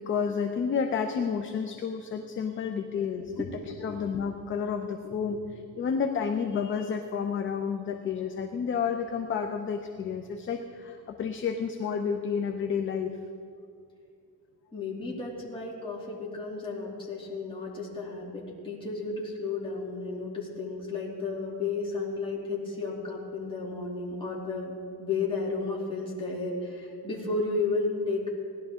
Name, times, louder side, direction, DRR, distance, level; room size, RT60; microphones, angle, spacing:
voice 1, 0.0-3.3 3.8-13.2, left 6 dB, 30° left, 5 dB, 0.6 m, -30 dB
voice 2, 14.7-28.3, left 3 dB, 15° left, -5 dB, 2.9 m, -33 dB
19.5 x 11.5 x 3.7 m, 2.3 s
cardioid pair, 145°, 40 cm